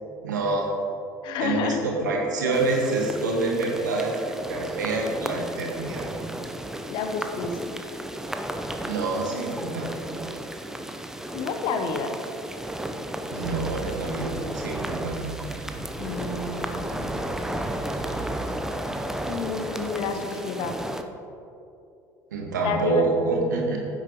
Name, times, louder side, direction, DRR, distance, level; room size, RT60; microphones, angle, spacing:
voice 1, 0.2-0.7 1.4-4.2 4.5-6.1 8.9-9.9 13.3-15.3 22.3-23.8, right 3 dB, 75° right, -1 dB, 1.6 m, -27 dB
voice 2, 1.2-1.8 2.5-2.6 6.9-7.8 11.3-12.1 16.0-17.1 19.3-20.8 22.6-23.1, left 4 dB, 55° left, 6 dB, 1.0 m, -29 dB
sound 1, 2.5-21.0, right 1 dB, 5° right, 0.7 m, -34 dB
sound 2, 13.4-18.6, right 4 dB, 25° right, 1.0 m, -39 dB
15.5 x 8.0 x 3.0 m, 2.8 s
figure-of-eight pair, 60°, 10 cm